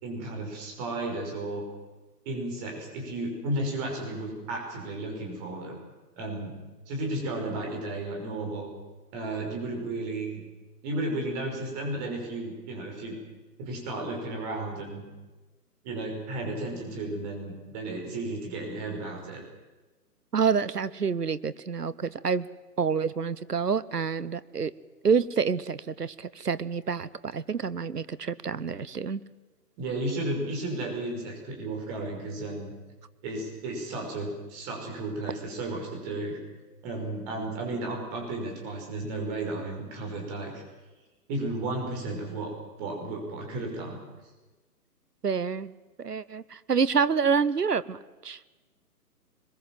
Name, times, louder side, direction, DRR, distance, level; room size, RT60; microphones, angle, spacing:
voice 1, 0.0-1.6 2.3-5.8 6.2-6.6 6.9-8.7 9.1-10.4 10.8-13.2 13.6-15.1 15.8-19.4 29.8-32.7 33.2-36.4 36.8-40.6 41.3-42.5 42.8-44.0, right 2 dB, 25° right, 1 dB, 5.9 m, -33 dB
voice 2, 20.3-22.5 22.8-24.7 25.0-29.2 45.2-45.7 46.0-48.4, right 6 dB, 75° right, 17 dB, 1.1 m, -27 dB
23.0 x 21.5 x 7.6 m, 1.2 s
figure-of-eight pair, 130°, 48 cm